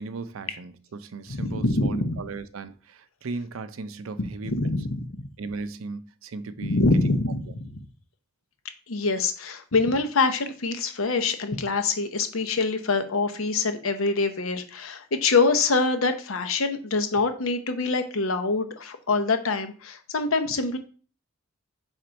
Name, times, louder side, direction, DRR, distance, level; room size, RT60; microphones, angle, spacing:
voice 1, 0.0-4.8 5.4-7.2 7.5-7.6, right 3 dB, 75° right, 0.5 m, -37 dB
voice 2, 1.3-2.2 4.4-5.1 6.6-7.7 8.9-20.8, left 3 dB, 75° left, 0.9 m, -25 dB
4.5 x 4.1 x 5.1 m
head